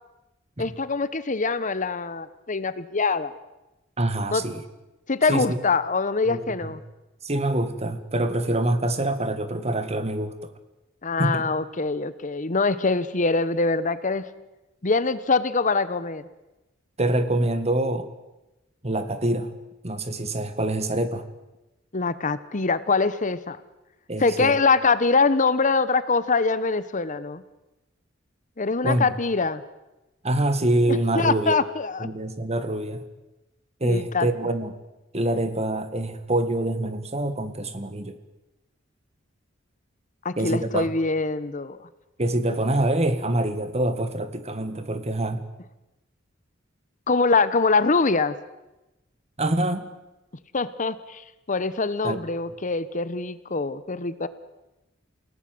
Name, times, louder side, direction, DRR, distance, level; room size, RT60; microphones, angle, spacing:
voice 1, 0.6-3.3 4.3-4.4 5.1-6.8 11.0-14.2 14.8-16.3 21.9-23.6 24.2-27.4 28.6-29.6 30.9-32.1 33.8-34.3 40.2-41.8 47.1-48.3 50.5-51.2 51.5-54.3, left 4 dB, 40° left, 14 dB, 1.0 m, -24 dB
voice 2, 4.0-4.6 5.3-5.6 6.3-6.7 7.2-10.5 11.2-11.4 17.0-18.1 18.8-19.5 19.8-21.3 24.1-24.6 28.8-29.1 30.2-31.6 32.0-33.1 33.8-34.8 35.1-38.2 40.4-40.9 42.2-45.4 49.4-49.9 52.0-52.2, right 1 dB, 35° right, 10 dB, 1.8 m, -25 dB
29.0 x 17.5 x 7.8 m, 1.0 s
head